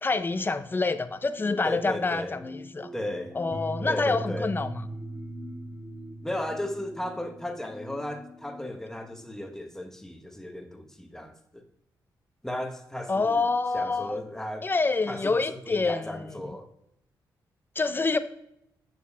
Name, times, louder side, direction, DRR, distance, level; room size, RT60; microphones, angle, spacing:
voice 1, 0.0-2.9 3.3-4.8 13.1-14.1 14.6-16.6 17.8-18.2, left 3 dB, 25° left, 0.6 m, -27 dB
sound 1, 1.4-9.5, right 1 dB, 40° right, 2.2 m, -40 dB
voice 2, 1.6-2.4 2.9-3.3 3.9-4.5 6.2-11.6 12.4-14.7 15.1-16.7, left 1 dB, 5° left, 1.1 m, -35 dB
9.1 x 6.7 x 2.3 m
cardioid pair, 70°, 8 cm